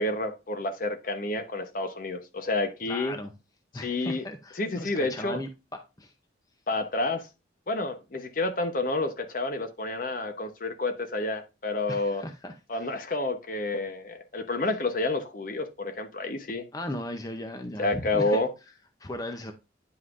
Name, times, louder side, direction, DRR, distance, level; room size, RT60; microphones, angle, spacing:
voice 1, 0.0-3.2 3.8-4.3 4.6-5.4 6.7-7.3 7.7-12.2 12.7-16.6 17.8-18.5, left 2 dB, 45° left, 0.9 m, -29 dB
voice 2, 2.8-3.3 3.7-5.5 6.0-6.1 11.9-12.9 16.7-18.4 19.0-19.5, left 1 dB, 20° left, 0.6 m, -37 dB
9.6 x 5.5 x 2.5 m
head